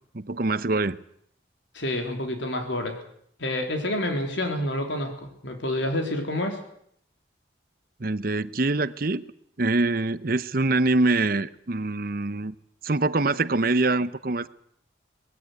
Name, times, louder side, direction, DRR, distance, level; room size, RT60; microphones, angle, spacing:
voice 1, 0.1-1.0 8.0-9.2 9.6-12.5 12.8-14.5, right 2 dB, 50° right, 15 dB, 0.8 m, -24 dB
voice 2, 1.7-3.0 3.4-6.6, left 1 dB, 75° left, 4 dB, 3.8 m, -28 dB
20.5 x 15.5 x 9.6 m, 0.69 s
head